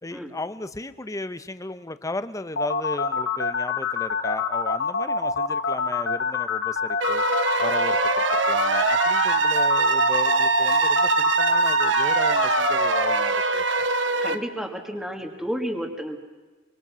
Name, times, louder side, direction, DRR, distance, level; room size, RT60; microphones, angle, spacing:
voice 1, 0.0-7.2 7.6-13.9, left 2 dB, 15° left, 12 dB, 0.8 m, -35 dB
sound 1, 2.6-13.2, left 5 dB, 90° left, 1.5 m, -26 dB
sound 2, 7.0-14.4, right 4 dB, 70° right, 1.3 m, -23 dB
voice 2, 14.2-16.2, equal, ahead, 2 dB, 1.9 m, -31 dB
24.5 x 23.5 x 6.2 m, 1.3 s
head